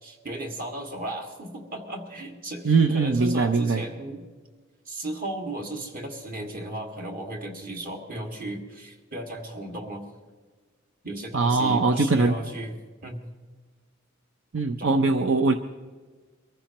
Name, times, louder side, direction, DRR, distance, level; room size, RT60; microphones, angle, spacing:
voice 1, 0.0-4.2 4.9-10.1 11.0-12.7 13.0-13.2 14.8-15.0, right 1 dB, 45° right, 1 dB, 2.1 m, -35 dB
voice 2, 2.6-3.8 11.3-12.4 14.5-15.5, right 3 dB, 65° right, 7 dB, 0.6 m, -21 dB
24.0 x 14.5 x 3.0 m, 1.4 s
head